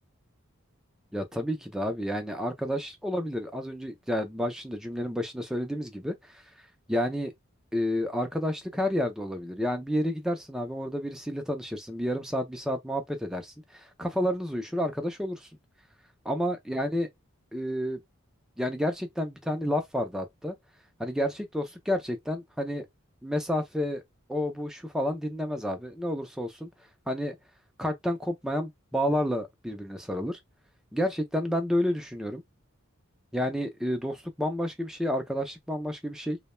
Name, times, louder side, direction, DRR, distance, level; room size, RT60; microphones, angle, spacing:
voice 1, 1.1-6.4 6.9-7.3 7.7-15.5 16.2-17.1 17.5-18.0 18.6-20.5 21.0-22.8 23.2-24.0 24.3-26.7 27.1-27.4 27.8-30.4 30.9-32.4 33.3-36.4, equal, 5° right, 0.4 m, -30 dB
2.2 x 2.1 x 3.0 m
head